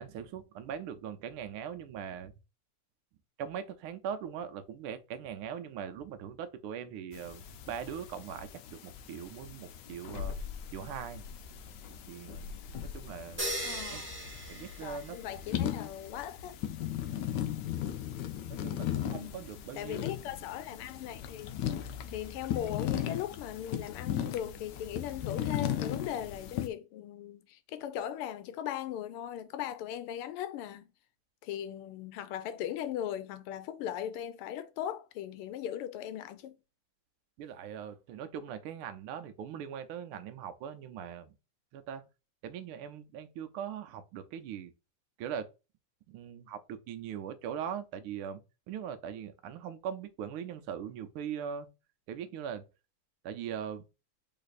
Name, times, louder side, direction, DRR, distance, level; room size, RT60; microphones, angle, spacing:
voice 1, 0.0-2.3 3.4-10.4 10.7-11.2 12.1-12.6 12.8-13.5 13.9-14.0 14.5-15.2 18.5-20.0 37.4-41.3 41.7-42.0 42.4-44.7 45.2-45.5 46.1-48.4 48.7-51.7 52.1-52.7 53.2-53.8, right 8 dB, 85° right, 1.5 m, -40 dB
sound 1, 7.1-26.7, left 10 dB, 75° left, 1.0 m, -38 dB
sound 2, 13.4-15.5, right 1 dB, 10° right, 0.7 m, -38 dB
voice 2, 13.6-14.1 14.8-16.6 19.1-19.4 19.7-21.7 22.1-30.9 31.4-36.6, left 11 dB, 90° left, 1.5 m, -38 dB
3.9 x 3.3 x 4.0 m
omnidirectional pair, 2.4 m